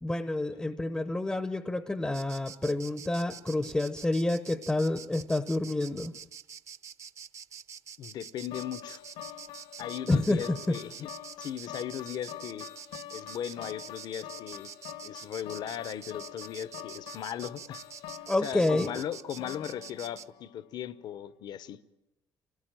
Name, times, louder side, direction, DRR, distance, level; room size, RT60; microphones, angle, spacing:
voice 1, 0.0-6.1 10.1-10.8 18.3-18.9, left 2 dB, 10° left, 12 dB, 0.8 m, -28 dB
Insect, 2.1-20.3, right 7 dB, 35° right, 0.8 m, -46 dB
voice 2, 8.0-9.0 9.8-11.1 11.4-12.7 13.1-14.7 15.0-17.8 18.4-21.8, left 10 dB, 50° left, 17 dB, 0.9 m, -38 dB
sound 1, 8.5-20.7, left 12 dB, 85° left, 2.0 m, -45 dB
26.5 x 18.0 x 9.0 m, 0.95 s
cardioid pair, 145°, 9 cm